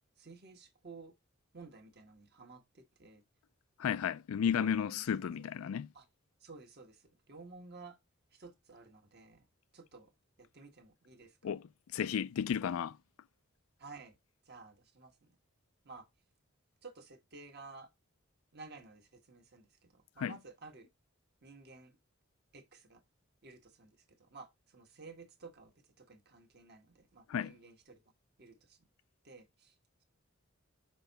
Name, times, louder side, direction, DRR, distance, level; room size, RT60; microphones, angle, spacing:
voice 1, 0.2-1.1 1.5-3.2 4.5-5.0 5.4-5.5 5.9-6.1 6.4-8.0 8.3-9.5 9.7-10.1 10.4-11.6 13.8-14.2 14.4-15.4 15.8-16.1 16.8-17.9 18.5-20.9 21.4-22.0 22.5-23.0 23.4-28.0 28.4-28.9 29.2-29.8, right 3 dB, 50° right, 1.4 m, -53 dB
voice 2, 3.8-5.9 11.4-11.6 11.9-13.0 20.2-20.3 27.3-27.5, left 8 dB, 85° left, 0.4 m, -33 dB
6.0 x 4.5 x 4.0 m
head